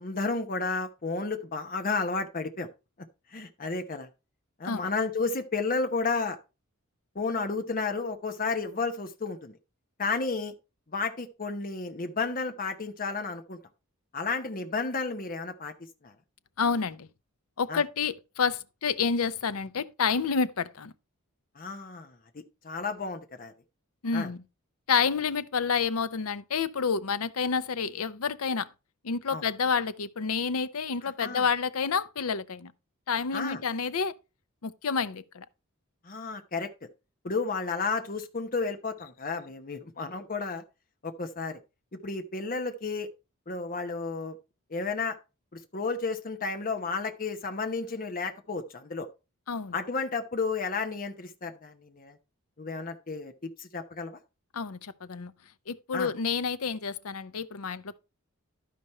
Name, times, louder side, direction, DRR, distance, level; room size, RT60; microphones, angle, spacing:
voice 1, 0.0-2.7 3.0-3.1 3.3-4.1 4.6-6.4 7.1-9.6 10.0-10.5 10.9-13.6 14.1-15.7 16.0-16.1 17.7-17.8 21.5-22.2 22.6-23.5 24.1-24.3 29.3-29.4 31.0-31.5 33.3-33.6 36.0-36.7 37.2-40.6 41.0-41.6 41.9-43.1 43.5-44.4 44.7-45.2 45.5-49.1 49.7-52.2 52.6-54.2 55.9-56.1, left 4 dB, 40° left, 1.0 m, -32 dB
voice 2, 16.6-17.1 17.6-20.9 24.0-24.4 24.9-28.7 29.0-32.7 33.1-34.1 34.6-35.4 49.5-49.7 54.5-55.3 55.7-58.0, left 5 dB, 80° left, 0.7 m, -29 dB
12.5 x 5.1 x 4.3 m
head